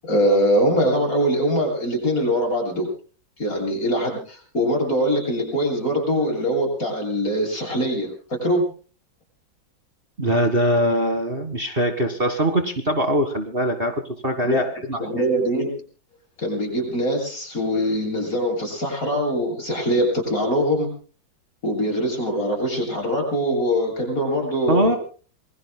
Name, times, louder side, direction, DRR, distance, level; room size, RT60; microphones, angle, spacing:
voice 1, 0.0-2.9 3.4-8.7 14.4-14.7 15.0-15.7 16.4-20.9 21.6-25.0, equal, 50° left, 2 dB, 8.5 m, -23 dB
voice 2, 10.2-15.2 24.7-25.0, equal, 30° right, 5 dB, 1.8 m, -22 dB
27.5 x 22.0 x 2.2 m, 0.38 s
omnidirectional pair, 2.0 m